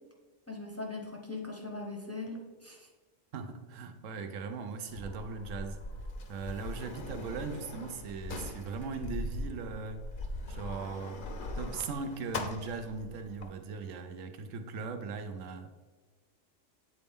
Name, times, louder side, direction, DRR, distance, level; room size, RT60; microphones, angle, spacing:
voice 1, 0.5-2.9, left 3 dB, 15° left, 0 dB, 0.7 m, -40 dB
voice 2, 3.3-5.8 6.3-10.0 10.5-11.2 11.6-15.7, right 4 dB, 80° right, 7 dB, 1.0 m, -39 dB
Sliding door, 4.9-13.5, left 2 dB, 50° left, 0.7 m, -41 dB
8.7 x 4.1 x 3.5 m, 1.4 s
omnidirectional pair, 1.3 m